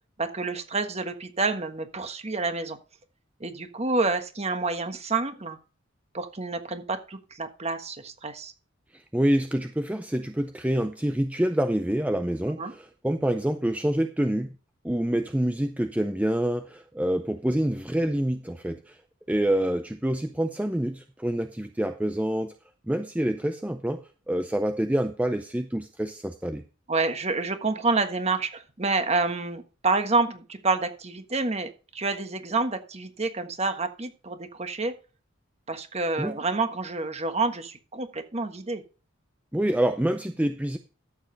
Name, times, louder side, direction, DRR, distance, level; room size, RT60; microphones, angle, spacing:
voice 1, 0.2-2.8 3.4-5.6 6.1-8.5 12.6-12.7 26.9-34.9 35.7-38.8, right 3 dB, 30° right, 8 dB, 1.4 m, -28 dB
voice 2, 8.9-14.5 14.8-19.0 19.3-22.5 22.9-24.0 24.3-26.6 36.2-36.4 39.5-40.8, right 1 dB, 5° right, 8 dB, 0.5 m, -27 dB
13.0 x 7.4 x 4.0 m, 0.34 s
head